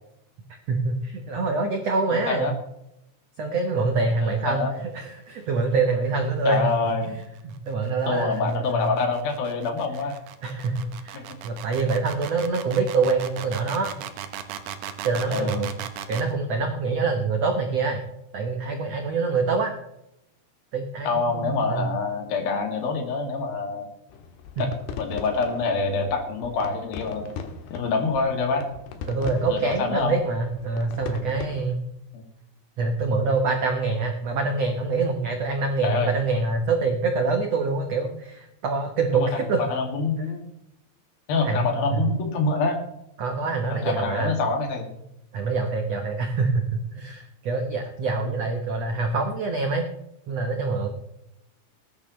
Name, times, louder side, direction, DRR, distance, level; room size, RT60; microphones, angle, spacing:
voice 1, 0.7-2.5 3.4-6.7 7.4-9.0 10.4-13.9 15.0-15.7 16.1-18.0 18.3-19.7 20.7-21.9 29.1-31.8 32.8-39.6 41.4-42.1 43.2-44.4 45.3-49.9 50.3-50.9, right 3 dB, 85° right, 4 dB, 1.4 m, -25 dB
voice 2, 2.1-2.5 4.2-4.7 6.5-7.1 8.1-10.1 11.1-11.3 15.3-15.6 21.1-23.9 24.6-24.7 25.0-27.2 27.7-28.6 29.5-30.2 32.1-32.2 35.8-36.1 39.1-40.4 41.3-42.8 43.7-44.9, left 4 dB, 60° left, 3 dB, 3.9 m, -26 dB
sound 1, 7.1-16.3, right 10 dB, 70° right, 2.5 m, -37 dB
sound 2, 24.1-31.7, left 6 dB, 75° left, 3.4 m, -39 dB
19.5 x 11.0 x 3.2 m, 0.82 s
omnidirectional pair, 4.9 m